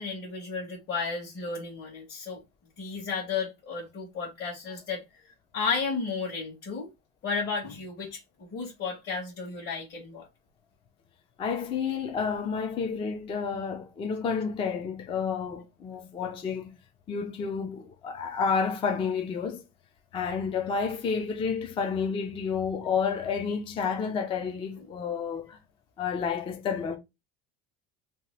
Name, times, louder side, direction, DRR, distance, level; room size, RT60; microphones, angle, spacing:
voice 1, 0.0-2.4 2.8-5.0 5.5-6.9 7.2-10.3, left 5 dB, 40° left, 1.2 m, -33 dB
voice 2, 11.4-16.7 17.1-19.6 20.1-25.6 26.0-27.0, left 6 dB, 20° left, 0.3 m, -30 dB
2.7 x 2.3 x 3.1 m
cardioid pair, 150°, 30 cm